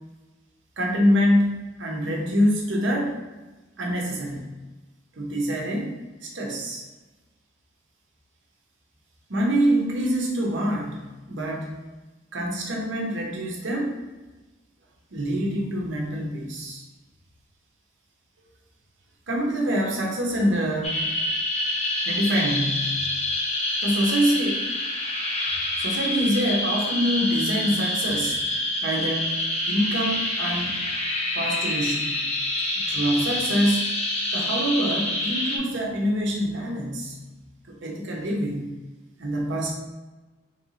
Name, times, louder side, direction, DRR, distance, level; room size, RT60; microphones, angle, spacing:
voice 1, 0.8-1.5 1.8-3.2 3.8-4.5 5.2-5.9 6.2-6.8 9.3-11.0 11.3-11.7 12.3-14.0 15.1-16.8 19.3-21.0 22.0-23.1 23.8-24.7 25.8-28.4 28.8-29.3 29.7-30.7 31.3-32.2 32.8-33.9 34.3-37.2 37.7-38.7 39.2-39.7, equal, 65° right, -1 dB, 0.9 m, -25 dB
sound 1, 20.8-35.6, left 1 dB, 35° left, 0.7 m, -27 dB
4.0 x 3.1 x 3.1 m, 1.2 s
head